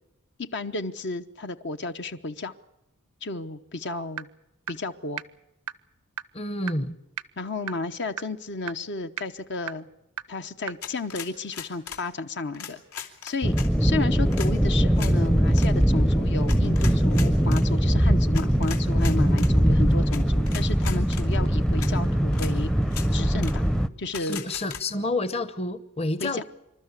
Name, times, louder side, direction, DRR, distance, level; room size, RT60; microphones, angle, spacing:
voice 1, 0.5-2.5 3.2-4.3 4.7-5.2 7.4-9.9 10.3-13.5 13.8-22.7 23.1-23.7 24.0-24.4 26.2-26.4, left 3 dB, 50° left, 9 dB, 0.9 m, -33 dB
sound 1, 4.2-4.3 4.7-4.8 5.2-5.3 5.7-5.8 6.2-6.3 6.7-6.8 7.2-7.3 7.7-7.8 8.2-8.3 8.7-8.8 9.2-9.3 9.7-9.8 10.2-10.3 10.7-10.8, right 9 dB, 90° right, 0.8 m, -31 dB
voice 2, 6.3-7.0 24.2-26.4, left 2 dB, 25° left, 13 dB, 1.0 m, -29 dB
sound 2, 10.8-12.0 12.5-13.7 14.3-14.5 15.0-15.1 15.5-15.7 16.5-17.6 18.3-19.5 20.1-20.2 20.5-21.2 21.8-21.9 22.3-22.5 22.9-23.1 23.4-23.5 24.1-24.8, left 9 dB, 75° left, 2.9 m, -38 dB
sound 3, 13.4-23.9, equal, 5° left, 0.7 m, -21 dB
27.0 x 13.0 x 9.8 m, 0.90 s
head